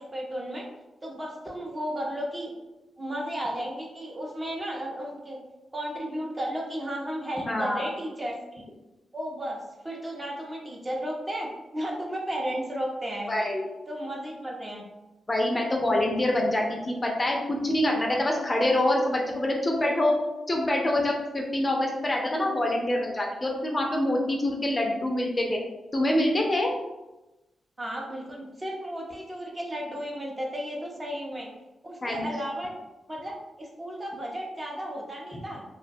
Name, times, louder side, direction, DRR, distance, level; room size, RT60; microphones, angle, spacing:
voice 1, 0.1-0.6 1.0-2.5 3.0-5.4 5.7-8.6 9.1-9.6 9.8-13.3 13.9-14.8 27.8-31.5 31.8-32.7 33.1-35.6, equal, 25° right, -2 dB, 0.6 m, -34 dB
voice 2, 7.5-7.9 13.3-13.7 15.3-20.2 20.5-25.6 25.9-26.7 32.0-32.3, left 1 dB, 30° left, 0 dB, 0.4 m, -25 dB
2.2 x 2.1 x 2.6 m, 1.0 s
cardioid pair, 65°, 0 cm